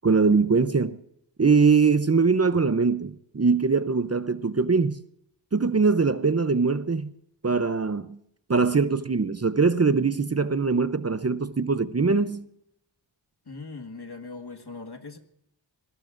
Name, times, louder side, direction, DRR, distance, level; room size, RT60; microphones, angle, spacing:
voice 1, 0.0-1.0 1.4-5.0 5.5-7.1 7.4-8.2 8.5-12.5, right 4 dB, 35° right, 0.7 m, -22 dB
voice 2, 13.5-15.2, left 3 dB, 55° left, 1.8 m, -40 dB
26.0 x 21.0 x 2.6 m
wide cardioid pair, 50°, 46 cm